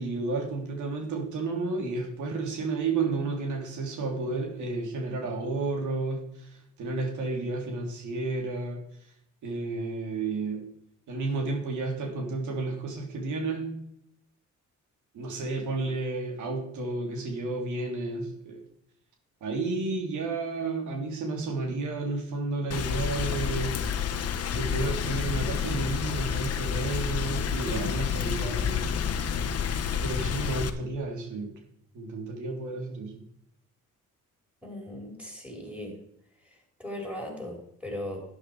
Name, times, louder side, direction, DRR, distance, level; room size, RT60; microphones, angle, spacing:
voice 1, 0.0-8.8 9.4-10.7 11.1-13.8 15.1-18.6 19.4-23.8 24.5-28.9 30.0-31.6 31.9-33.2, right 3 dB, 75° right, 2 dB, 3.2 m, -32 dB
Rain, 22.7-30.7, left 7 dB, 55° left, 1.1 m, -29 dB
voice 2, 34.6-35.9 36.4-38.2, left 1 dB, 5° right, -1 dB, 5.4 m, -38 dB
11.5 x 9.8 x 4.9 m, 0.73 s
cardioid pair, 90°, 30 cm